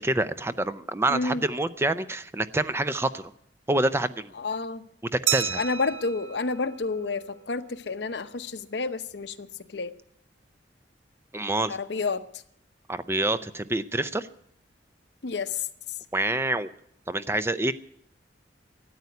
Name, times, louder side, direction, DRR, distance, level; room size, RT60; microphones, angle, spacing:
voice 1, 0.0-3.2 3.7-4.3 5.1-5.6 11.3-11.8 12.9-14.3 16.1-16.7 17.1-17.7, right 2 dB, 15° right, 0.5 m, -27 dB
voice 2, 1.1-1.4 4.4-4.8 5.6-9.9 11.7-12.2 15.2-15.7, left 4 dB, 65° left, 0.8 m, -30 dB
Glass, 5.3-7.7, right 10 dB, 85° right, 0.6 m, -32 dB
13.5 x 9.5 x 9.3 m
head